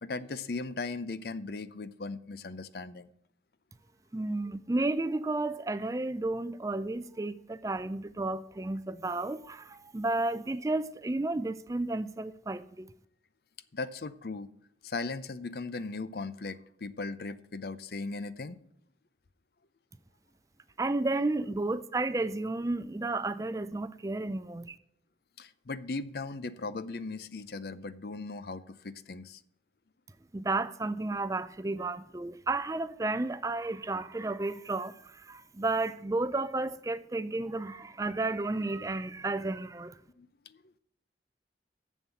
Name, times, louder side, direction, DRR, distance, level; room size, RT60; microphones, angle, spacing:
voice 1, 0.0-3.1 13.7-14.5 14.8-18.6 25.4-29.4 40.1-40.6, left 3 dB, 60° left, 0.6 m, -38 dB
voice 2, 4.1-12.9 20.8-24.8 30.3-40.0, right 2 dB, 20° right, 0.4 m, -32 dB
7.2 x 7.2 x 8.3 m
head